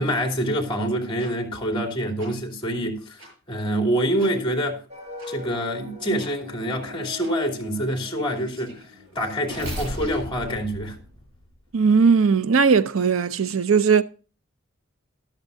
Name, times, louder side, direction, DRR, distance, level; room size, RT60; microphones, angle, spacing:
voice 1, 0.0-3.2 3.5-4.8 5.3-8.8 9.1-11.0, equal, 25° left, 3.0 m, -26 dB
sound 1, 1.2-1.3 2.2-2.3 3.2-3.3 4.2-4.3 5.2-5.3 6.2-6.3 7.2-7.3 7.9-11.8, equal, 70° right, 7.7 m, -37 dB
sound 2, 4.9-9.7, left 1 dB, 35° right, 4.7 m, -42 dB
voice 2, 11.7-14.0, right 5 dB, 85° right, 0.6 m, -18 dB
13.5 x 12.0 x 2.6 m
head